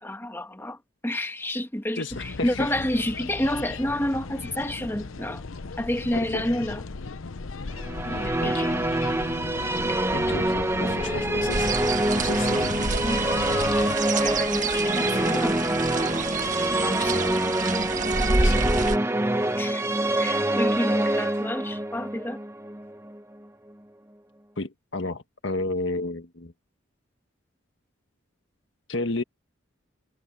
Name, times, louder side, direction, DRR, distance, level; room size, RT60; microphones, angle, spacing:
voice 1, 0.0-5.4 5.8-6.8 8.1-9.1 9.9-10.0 10.3-10.5 10.8-11.6 13.0-13.2 14.2-15.9 16.8-17.2 19.6-19.8 20.2-22.4, left 1 dB, 10° left, 1.6 m, -30 dB
voice 2, 2.0-2.7 6.1-6.5 8.4-8.7 10.1-13.0 18.1-18.7 24.6-26.5 28.9-29.2, left 2 dB, 60° left, 1.5 m, -33 dB
sound 1, 2.1-14.0, left 4 dB, 80° left, 0.8 m, -36 dB
Musical instrument, 7.8-23.2, right 1 dB, 15° right, 1.2 m, -26 dB
sound 2, 11.5-19.0, right 3 dB, 40° right, 1.7 m, -28 dB
head